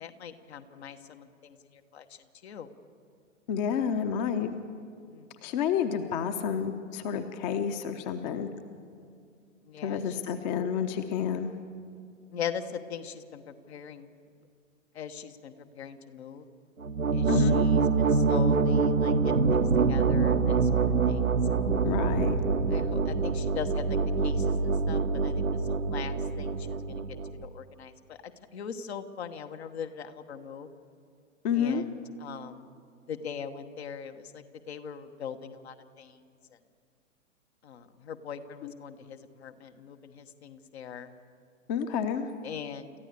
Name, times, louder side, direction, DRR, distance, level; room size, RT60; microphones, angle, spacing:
voice 1, 0.0-1.6 1.9-2.7 5.1-5.3 9.7-10.2 12.3-14.1 14.9-16.4 17.1-21.2 21.5-21.8 22.7-27.0 27.4-30.7 31.5-32.7 33.1-36.2 37.6-41.1 42.4-42.9, left 7 dB, 55° left, 8 dB, 1.3 m, -41 dB
voice 2, 3.5-4.5 5.4-8.5 9.8-11.5 17.3-17.6 21.8-22.4 31.4-31.8 38.6-38.7 41.7-42.3, left 7 dB, 35° left, 9 dB, 1.1 m, -29 dB
sound 1, 16.8-27.4, right 4 dB, 90° right, 1.1 m, -25 dB
29.0 x 14.0 x 6.9 m, 2.3 s
figure-of-eight pair, 110°, 39 cm